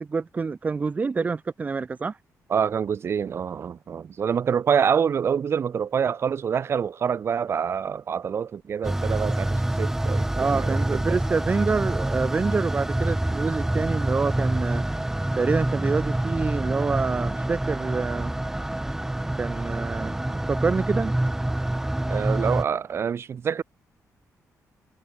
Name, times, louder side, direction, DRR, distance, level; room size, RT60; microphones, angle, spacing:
voice 1, 0.0-2.2 10.3-14.8 15.3-18.3 19.3-21.1, right 4 dB, 25° right, 2.3 m, -27 dB
voice 2, 2.5-10.3 10.5-11.2 22.1-23.6, right 7 dB, 45° right, 7.8 m, -26 dB
sound 1, 8.8-22.6, right 1 dB, 5° right, 5.4 m, -26 dB
wide cardioid pair, 180°, 6 cm